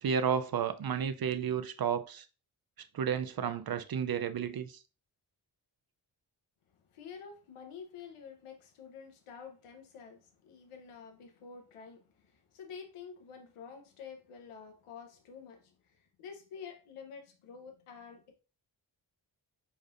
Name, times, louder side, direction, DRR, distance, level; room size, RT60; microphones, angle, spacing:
voice 1, 0.0-2.3 2.9-4.8, right 7 dB, 50° right, 0.6 m, -32 dB
voice 2, 6.9-18.3, left 6 dB, 90° left, 1.0 m, -49 dB
4.9 x 4.2 x 2.6 m
supercardioid pair, 40°, 49 cm